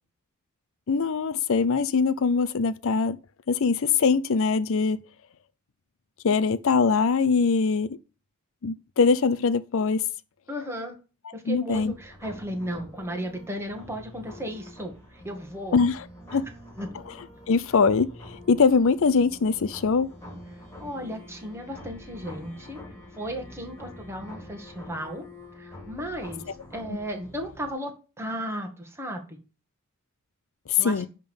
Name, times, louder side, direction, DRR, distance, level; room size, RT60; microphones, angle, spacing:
voice 1, 0.9-3.2 3.5-5.0 6.2-8.0 8.6-10.0 11.5-11.9 15.7-16.0 16.3-16.5 17.5-20.1 26.9-27.0 30.7-31.1, left 5 dB, 65° left, 0.5 m, -22 dB
voice 2, 10.5-11.0 11.3-15.8 16.8-16.9 20.5-22.8 23.2-25.2 25.6-29.4 30.8-31.0, equal, 10° right, 2.0 m, -35 dB
sound 1, 11.7-27.7, left 1 dB, 15° left, 3.6 m, -46 dB
11.0 x 3.8 x 7.0 m
head